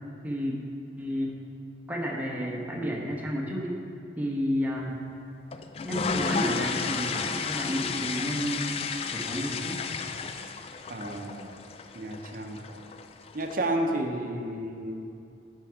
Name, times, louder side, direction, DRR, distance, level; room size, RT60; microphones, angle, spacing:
voice 1, 0.2-0.6 1.0-1.4 1.9-3.8 4.2-5.0 5.8-8.8 9.1-9.8, equal, 10° right, -3 dB, 1.0 m, -31 dB
sound 1, 5.5-13.5, left 5 dB, 35° left, 0.3 m, -33 dB
voice 2, 10.9-11.6 11.9-12.8 13.3-15.1, right 1 dB, 50° right, 3 dB, 0.7 m, -32 dB
10.0 x 4.6 x 5.0 m, 2.5 s
head